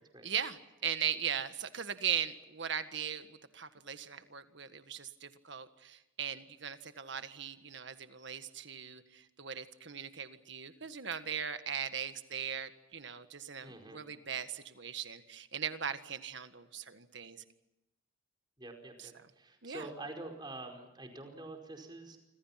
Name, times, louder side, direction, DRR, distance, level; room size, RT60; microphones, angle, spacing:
voice 1, 0.2-17.4 19.0-19.1 19.6-19.9, right 8 dB, 60° right, 10 dB, 1.7 m, -39 dB
voice 2, 13.6-14.0 18.6-22.2, right 2 dB, 20° right, 3 dB, 4.9 m, -46 dB
28.5 x 26.5 x 5.9 m, 0.93 s
head